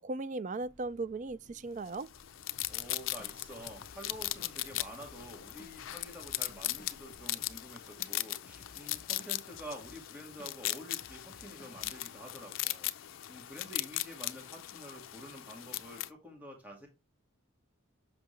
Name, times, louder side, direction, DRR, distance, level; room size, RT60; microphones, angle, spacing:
voice 1, 0.0-2.1, right 3 dB, 40° right, 0.4 m, -37 dB
sound 1, 0.6-7.1, left 1 dB, 80° right, 4.5 m, -62 dB
sound 2, 1.9-16.1, left 15 dB, 80° left, 0.5 m, -39 dB
sound 3, 2.6-12.2, left 4 dB, 45° left, 0.8 m, -57 dB
voice 2, 2.7-12.9 13.3-16.9, equal, 10° right, 1.9 m, -48 dB
7.5 x 5.9 x 3.2 m
head